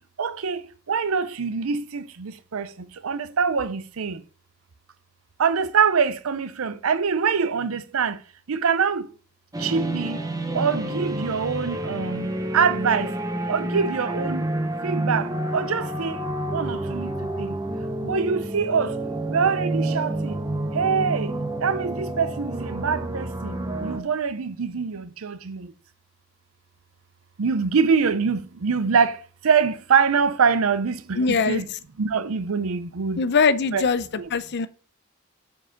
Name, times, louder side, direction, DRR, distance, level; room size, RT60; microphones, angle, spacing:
voice 1, 0.0-4.2 5.4-8.2 8.5-9.1 9.6-10.2 10.5-13.2 13.5-14.5 14.8-16.2 16.5-17.6 18.0-19.0 19.3-20.4 20.7-25.7 27.4-31.7 32.0-33.2 33.7-33.8 34.2-34.3, right 6 dB, 70° right, 0.6 m, -24 dB
sound 1, 9.5-24.0, right 1 dB, 15° right, 0.8 m, -29 dB
voice 2, 31.1-31.6 33.2-34.7, left 5 dB, 55° left, 0.6 m, -22 dB
7.4 x 4.7 x 5.1 m
head